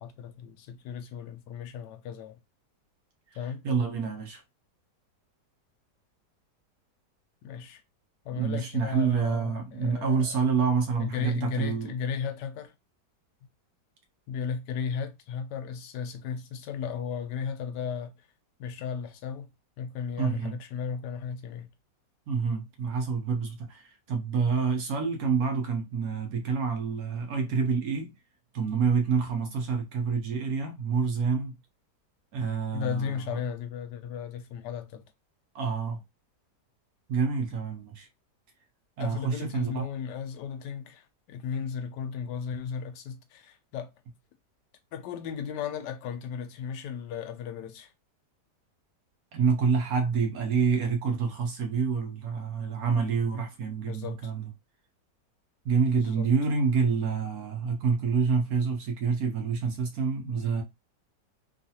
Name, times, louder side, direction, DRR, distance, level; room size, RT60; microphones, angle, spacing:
voice 1, 0.0-2.4 3.4-3.6 7.4-7.8 8.2-10.4 11.0-12.7 14.3-18.1 18.6-19.5 19.8-21.7 32.7-35.0 39.0-43.9 44.9-47.9 53.9-54.3 55.8-56.3, left 7 dB, 80° left, 1.2 m, -35 dB
voice 2, 3.6-4.4 8.3-11.9 20.2-20.6 22.3-28.1 28.5-31.5 32.3-33.4 35.5-36.0 37.1-38.1 39.0-39.9 49.3-54.5 55.6-60.6, right 5 dB, 65° right, 1.1 m, -27 dB
3.1 x 2.4 x 2.7 m
omnidirectional pair, 1.9 m